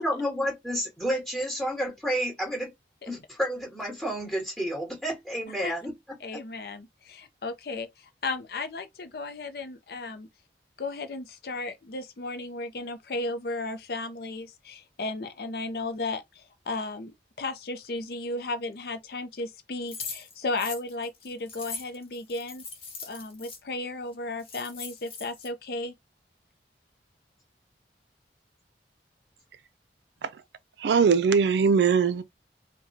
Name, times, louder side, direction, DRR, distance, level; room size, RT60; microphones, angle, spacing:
voice 1, 0.0-2.7 3.1-5.9 6.3-6.4, equal, 5° left, 2.2 m, -30 dB
voice 2, 6.2-10.3 10.8-22.6 23.0-25.9, left 2 dB, 55° left, 0.5 m, -35 dB
sound 1, 19.9-23.6 24.1-24.2 24.4-25.5, left 4 dB, 30° left, 1.3 m, -40 dB
voice 3, 30.8-32.2, right 6 dB, 75° right, 0.4 m, -21 dB
4.8 x 2.2 x 2.6 m
head